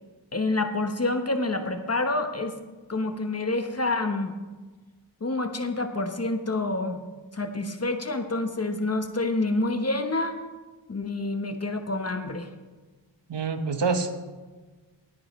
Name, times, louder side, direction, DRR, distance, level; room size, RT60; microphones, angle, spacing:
voice 1, 0.3-2.5 2.9-4.3 5.2-7.0 7.3-10.4 10.9-12.5, left 2 dB, 35° left, 7 dB, 1.1 m, -27 dB
voice 2, 13.3-14.2, right 4 dB, 65° right, 7 dB, 1.2 m, -26 dB
19.5 x 9.4 x 3.2 m, 1.3 s
wide cardioid pair, 85°, 46 cm